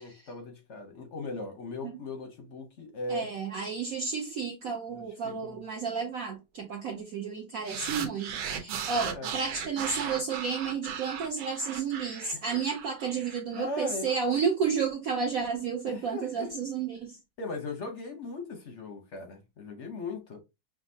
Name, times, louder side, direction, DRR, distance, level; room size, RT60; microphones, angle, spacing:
voice 1, 0.0-3.3 4.9-5.6 9.1-9.3 12.5-12.6 13.5-14.1 15.9-16.5 17.4-20.4, left 2 dB, 55° left, 0.8 m, -38 dB
voice 2, 3.1-17.2, right 6 dB, 65° right, 0.9 m, -32 dB
sound 1, 7.7-14.2, right 7 dB, 85° right, 1.6 m, -37 dB
5.9 x 2.5 x 2.7 m
omnidirectional pair, 2.1 m